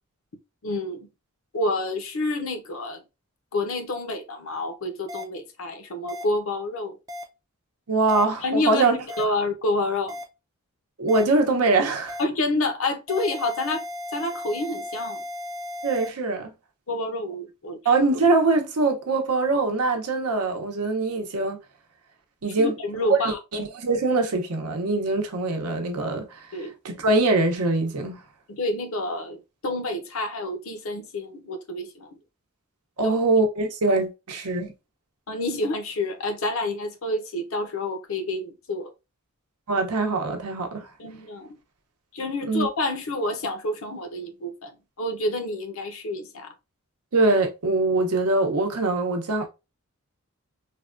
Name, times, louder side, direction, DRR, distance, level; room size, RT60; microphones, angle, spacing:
voice 1, 0.6-1.1 1.5-3.0 3.5-7.0 8.4-8.9 9.2-10.2 12.2-13.8 14.1-15.2 16.9-17.8 22.6-23.4 26.5-26.7 28.5-32.2 33.0-33.2 35.3-38.9 41.0-41.6 42.1-46.5, left 2 dB, 65° left, 0.6 m, -28 dB
sound 1, 5.1-5.2 6.1-6.2 7.1-7.2 8.1-8.2 9.1-9.2 10.1-10.2 11.1-11.2 12.1-12.2 13.1-16.1, left 1 dB, 15° right, 0.3 m, -35 dB
voice 2, 7.9-9.0 11.0-12.2 15.8-16.5 17.8-21.6 22.4-22.7 23.1-28.2 33.0-34.7 39.7-40.9 42.5-42.7 47.1-49.5, right 3 dB, 85° right, 0.7 m, -23 dB
3.4 x 2.2 x 2.4 m
head